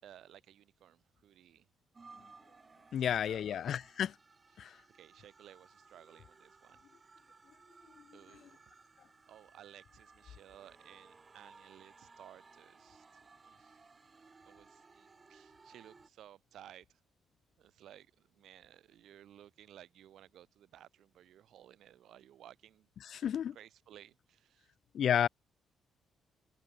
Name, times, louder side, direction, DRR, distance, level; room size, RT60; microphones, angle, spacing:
voice 1, 0.0-1.7 3.0-3.4 4.6-6.8 8.1-13.8 14.4-17.0 17.6-22.9 23.1-23.3 23.5-24.7, right 11 dB, 75° right, 3.5 m, -58 dB
sound 1, 1.9-16.1, right 4 dB, 30° right, 7.5 m, -60 dB
voice 2, 2.9-4.2 4.6-4.8 8.0-8.2 23.0-23.6 24.9-25.3, left 9 dB, 65° left, 0.4 m, -32 dB
cardioid pair, 90°, 0 cm